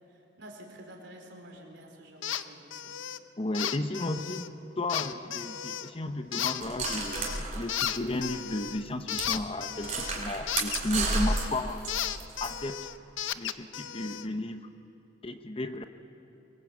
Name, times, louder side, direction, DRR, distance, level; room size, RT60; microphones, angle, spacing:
voice 1, 0.1-2.9, right 1 dB, 65° right, 1 dB, 4.1 m, -49 dB
sound 1, 2.2-2.4 2.7-3.2 3.5-4.5 4.9-5.9 6.3-7.4 7.7-11.5 11.9-14.3, left 10 dB, 75° left, 0.7 m, -34 dB
voice 2, 3.4-4.5 4.8-12.0 12.4-12.8 13.3-14.7 15.2-15.9, left 2 dB, 30° left, 9 dB, 0.8 m, -34 dB
sound 2, 6.6-8.4 8.7-8.8 9.1-9.3 9.8-12.5, right 3 dB, 40° right, 3.8 m, -32 dB
24.5 x 20.5 x 8.4 m, 2.9 s
head